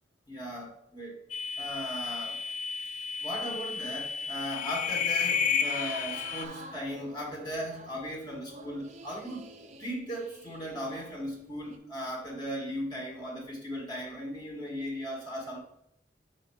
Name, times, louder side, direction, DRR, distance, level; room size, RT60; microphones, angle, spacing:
voice 1, 0.3-1.2 1.6-2.4 3.2-9.5 9.8-15.6, equal, 25° left, -3 dB, 1.2 m, -37 dB
sound 1, 1.3-6.4, left 6 dB, 40° left, 0.3 m, -32 dB
sound 2, 4.9-11.8, right 3 dB, 40° right, 0.5 m, -48 dB
4.5 x 3.9 x 5.3 m, 0.75 s
head